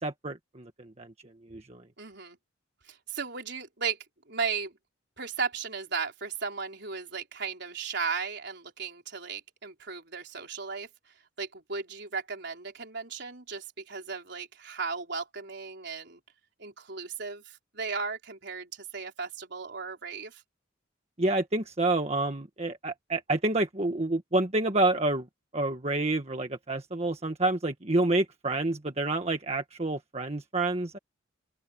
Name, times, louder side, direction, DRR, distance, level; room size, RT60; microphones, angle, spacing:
voice 1, 0.0-1.1 1.5-1.8 21.2-25.3 25.5-31.0, right 2 dB, 35° right, 1.5 m, -28 dB
voice 2, 2.0-2.4 2.9-4.0 4.3-4.8 5.2-10.9 11.4-16.2 16.6-20.4, right 5 dB, 60° right, 4.3 m, -36 dB
open air
head